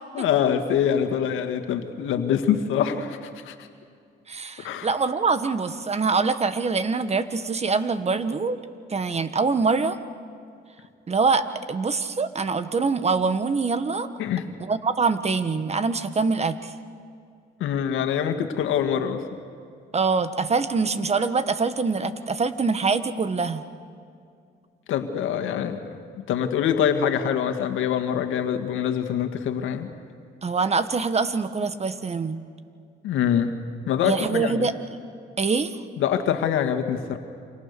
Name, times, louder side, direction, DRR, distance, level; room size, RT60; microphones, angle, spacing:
voice 1, 0.1-3.5 4.6-4.9 14.2-14.5 17.6-19.2 24.9-26.0 26.3-29.9 33.0-33.5 33.9-34.7 36.0-37.2, left 8 dB, 90° left, 7 dB, 1.9 m, -24 dB
voice 2, 4.3-8.6 8.9-10.0 11.1-14.1 14.6-16.7 19.9-23.7 30.4-32.4 34.0-34.8 35.4-35.8, right 4 dB, 30° right, 11 dB, 1.4 m, -24 dB
29.0 x 26.0 x 6.8 m, 2.3 s
cardioid pair, 90°, 20 cm